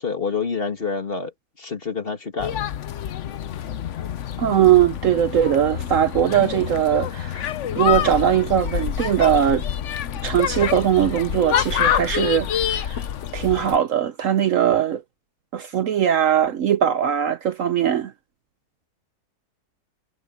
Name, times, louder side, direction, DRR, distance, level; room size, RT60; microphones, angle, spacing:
voice 1, 0.0-1.3 1.6-2.7 3.3-3.4, left 5 dB, 35° left, 2.0 m, -28 dB
sound 1, 2.4-13.8, left 10 dB, 55° left, 0.9 m, -27 dB
voice 2, 4.4-9.6 10.2-13.0 13.3-15.0 15.5-18.1, right 10 dB, 60° right, 1.0 m, -20 dB
omnidirectional pair, 1.7 m